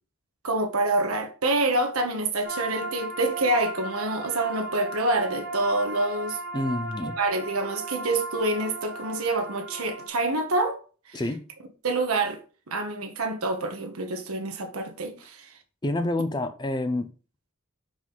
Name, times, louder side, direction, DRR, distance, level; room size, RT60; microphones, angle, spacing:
voice 1, 0.4-6.4 7.2-10.8 11.1-11.2 11.8-12.4 12.7-15.5, right 2 dB, 85° right, 1.1 m, -27 dB
sound 1, 2.4-10.1, right 2 dB, 45° right, 1.2 m, -36 dB
voice 2, 6.5-7.2 11.1-11.5 15.8-17.1, left 2 dB, 20° left, 0.4 m, -28 dB
4.9 x 3.8 x 5.5 m
head